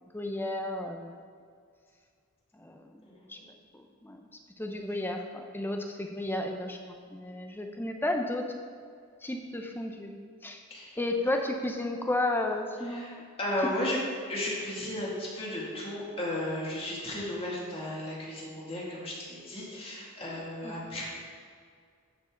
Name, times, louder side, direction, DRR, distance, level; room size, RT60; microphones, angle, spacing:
voice 1, 0.1-1.2 2.5-3.0 3.3-3.4 3.7-4.3 4.6-8.5 9.2-10.1 10.4-10.6 11.0-13.2 20.6-21.0, left 1 dB, 10° left, 4 dB, 0.6 m, -33 dB
voice 2, 3.1-3.4 10.7-11.0 12.8-13.1 13.4-14.0 14.3-21.1, left 1 dB, 25° left, -5 dB, 2.2 m, -34 dB
13.0 x 5.4 x 3.8 m, 2.1 s
head